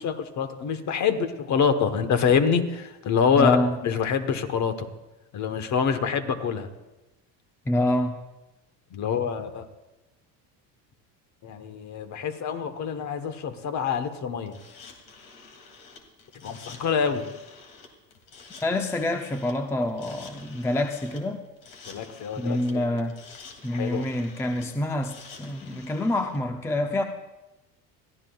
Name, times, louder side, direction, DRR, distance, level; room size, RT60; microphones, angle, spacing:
voice 1, 0.0-3.6 3.8-4.9 5.3-6.7 8.9-9.7 11.4-14.6 16.4-17.3 21.8-22.9 23.7-24.0, left 6 dB, 45° left, 9 dB, 1.2 m, -26 dB
voice 2, 3.3-3.8 7.7-8.2 18.6-21.4 22.4-23.2 23.6-27.0, left 1 dB, 5° left, 5 dB, 0.5 m, -26 dB
sound 1, 14.5-26.4, left 4 dB, 70° left, 2.6 m, -48 dB
22.0 x 14.5 x 2.3 m, 1.0 s
cardioid pair, 120°, 40 cm